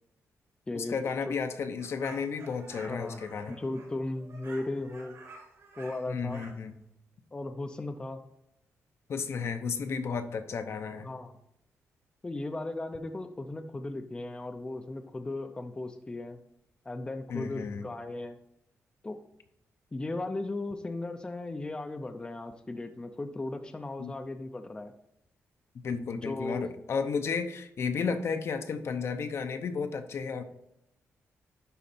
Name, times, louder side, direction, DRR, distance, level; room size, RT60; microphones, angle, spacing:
voice 1, 0.7-3.6 6.1-6.7 9.1-11.1 17.3-17.9 24.0-24.1 25.8-30.4, left 5 dB, 55° left, 8 dB, 0.7 m, -33 dB
sound 1, 1.8-6.6, right 3 dB, 70° right, 3.2 m, -51 dB
voice 2, 2.9-3.2 3.5-5.2 5.8-6.4 7.3-8.2 11.0-11.3 12.2-16.4 16.9-18.4 19.0-19.2 19.9-24.9 26.2-26.7, left 2 dB, 15° left, 6 dB, 0.6 m, -36 dB
11.0 x 4.1 x 4.2 m, 0.81 s
wide cardioid pair, 145°, 5 cm